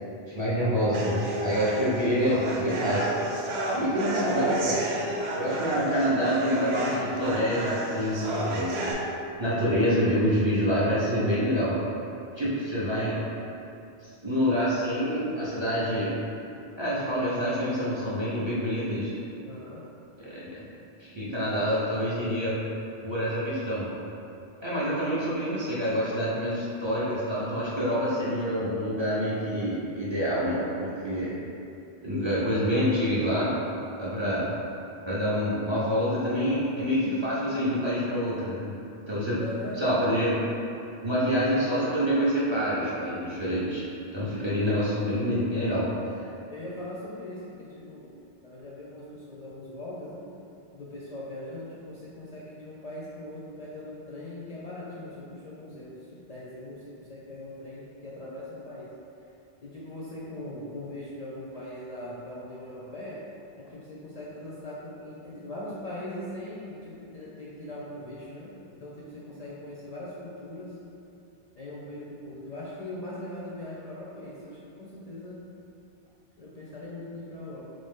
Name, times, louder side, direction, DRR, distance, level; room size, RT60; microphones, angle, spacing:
voice 1, 0.3-3.1 3.7-4.8 5.3-8.8 9.4-11.8 12.4-13.2 14.2-16.1 16.8-19.1 20.2-20.6 21.0-22.5 23.0-23.9 24.6-31.3 32.0-33.5 33.9-34.5 35.1-38.8 39.1-39.4 39.8-40.3 41.0-43.8 44.1-45.9, equal, 35° right, -9 dB, 0.5 m, -27 dB
sound 1, 0.9-8.9, right 1 dB, 80° right, 0.8 m, -32 dB
voice 2, 19.4-19.8 39.4-40.1 46.5-48.1 48.4-50.3 50.7-58.9 59.6-63.2 63.6-68.5 68.8-70.8 71.5-75.4 76.4-77.6, left 1 dB, 50° left, -7 dB, 0.5 m, -40 dB
3.5 x 2.6 x 3.5 m, 2.7 s
omnidirectional pair, 1.0 m